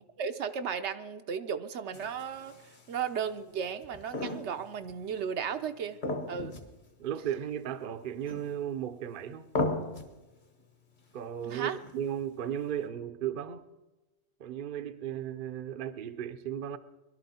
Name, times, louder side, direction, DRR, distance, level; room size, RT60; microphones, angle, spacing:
voice 1, 0.2-2.5 2.9-6.0 6.3-6.6 11.5-11.8, right 7 dB, 75° right, 1.0 m, -35 dB
sound 1, 1.9-3.0 3.8-4.8 5.1-5.2 6.0-6.8 7.1-7.2 8.2-8.8 9.5-10.2 11.8-12.2, left 2 dB, 45° left, 1.4 m, -35 dB
voice 2, 7.0-9.5 11.1-13.6 14.4-16.8, right 9 dB, 55° right, 0.7 m, -35 dB
21.0 x 12.0 x 4.3 m
omnidirectional pair, 1.2 m